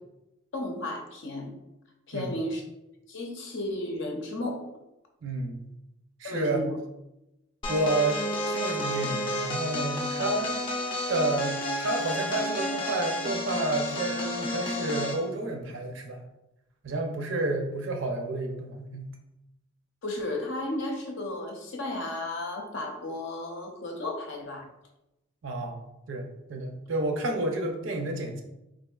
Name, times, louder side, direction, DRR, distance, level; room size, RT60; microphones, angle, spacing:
voice 1, 0.5-1.5 2.1-2.6 3.1-4.6 6.2-6.8 20.0-24.6, left 1 dB, 65° left, 1 dB, 0.6 m, -33 dB
voice 2, 5.2-5.7 6.2-6.7 7.7-10.6 11.1-16.3 16.8-19.1 25.4-25.8 26.1-28.4, right 2 dB, 70° right, 4 dB, 0.5 m, -30 dB
sound 1, 7.6-15.2, left 1 dB, 25° left, 0.5 m, -31 dB
3.9 x 2.6 x 2.3 m, 0.92 s
head